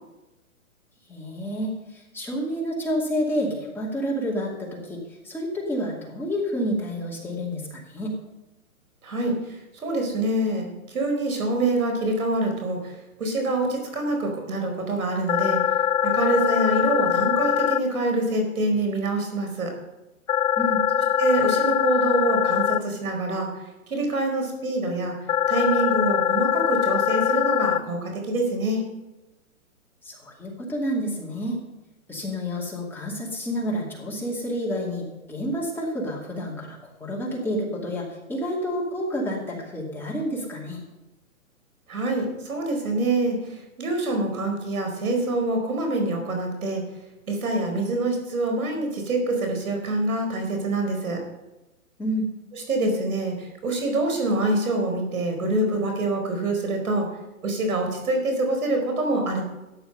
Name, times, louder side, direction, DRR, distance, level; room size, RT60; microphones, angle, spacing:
voice 1, 1.1-5.0 5.2-8.2 20.6-20.8 30.0-31.6 32.1-40.8 52.0-52.3, equal, 5° left, -5 dB, 2.4 m, -29 dB
voice 2, 9.0-12.9 13.2-15.6 16.0-19.7 21.0-23.6 23.9-25.2 25.5-28.9 41.9-46.8 47.3-51.2 52.5-57.1 57.4-59.4, right 2 dB, 80° right, 3 dB, 4.7 m, -25 dB
sound 1, 15.3-17.8 20.3-22.8 25.3-27.8, left 9 dB, 70° left, 0.7 m, -22 dB
14.0 x 10.0 x 5.5 m, 1.0 s
hypercardioid pair, 145°, 42 cm